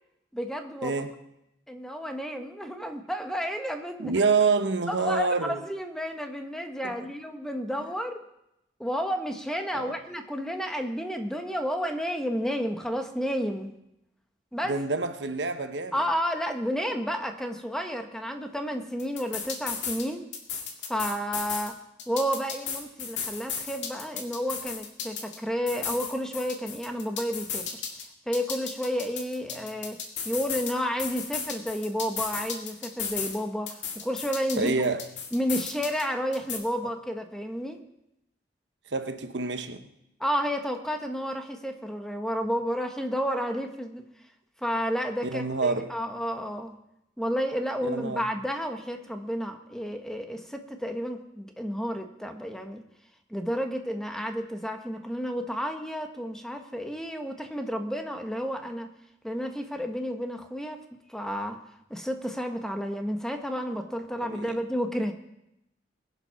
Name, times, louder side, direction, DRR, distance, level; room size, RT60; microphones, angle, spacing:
voice 1, 0.3-1.0 1.7-4.1 4.9-8.2 8.8-13.7 14.5-14.8 15.9-20.3 20.9-21.7 22.1-27.7 28.3-30.0 30.2-34.7 35.3-37.8 40.2-44.0 44.6-46.7 47.2-52.8 53.3-58.9 59.2-60.8 61.1-61.6 61.9-65.1, equal, 5° left, 1.2 m, -31 dB
voice 2, 4.0-5.6 6.8-6.9 9.7-9.9 14.7-16.0 34.6-35.0 38.9-39.9 45.2-45.9 47.8-48.2 64.2-64.6, right 4 dB, 80° right, 1.1 m, -27 dB
sound 1, 19.0-20.0 20.3-21.7 22.0-25.4 25.7-28.0 28.3-30.7 31.0-33.4 33.7-36.0 36.3-36.6, left 6 dB, 80° left, 2.2 m, -34 dB
21.0 x 7.4 x 5.8 m
head